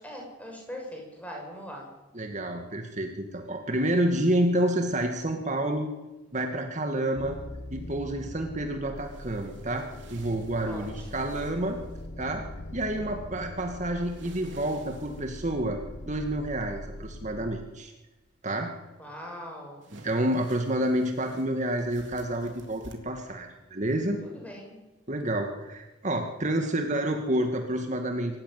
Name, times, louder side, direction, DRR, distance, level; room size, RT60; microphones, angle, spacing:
voice 1, 0.0-1.9 10.7-11.3 19.0-19.9 24.2-24.8, equal, 10° left, 0 dB, 7.2 m, -41 dB
voice 2, 2.1-5.9 6.3-7.4 7.7-11.8 12.2-12.4 12.7-15.8 16.0-17.9 18.4-18.7 19.9-24.2 25.1-28.4, right 1 dB, 40° right, 4 dB, 2.1 m, -29 dB
sound 1, 7.2-17.5, left 1 dB, 65° left, 1.5 m, -42 dB
sound 2, 9.0-12.1 14.0-15.5 19.8-22.9, right 2 dB, 90° right, 3.6 m, -53 dB
25.0 x 15.0 x 9.6 m, 1.1 s
head